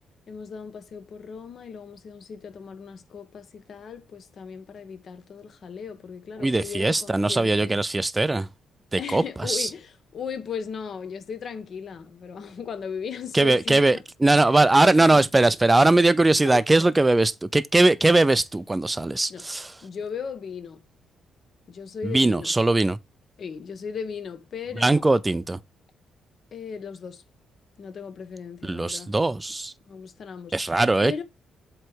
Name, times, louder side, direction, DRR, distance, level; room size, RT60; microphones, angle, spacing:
voice 1, 0.3-7.8 9.0-14.0 14.9-15.5 16.4-16.9 19.3-19.5 19.8-20.8 21.7-22.5 23.4-25.0 26.5-27.2 27.8-29.1 29.8-30.7 31.0-31.2, left 6 dB, 55° left, 1.3 m, -37 dB
voice 2, 6.4-8.5 8.9-9.7 13.3-19.7 22.0-23.0 24.8-25.6 28.6-29.7 30.5-31.1, right 2 dB, 15° right, 0.6 m, -20 dB
7.9 x 3.3 x 4.7 m
cardioid pair, 90°, 0 cm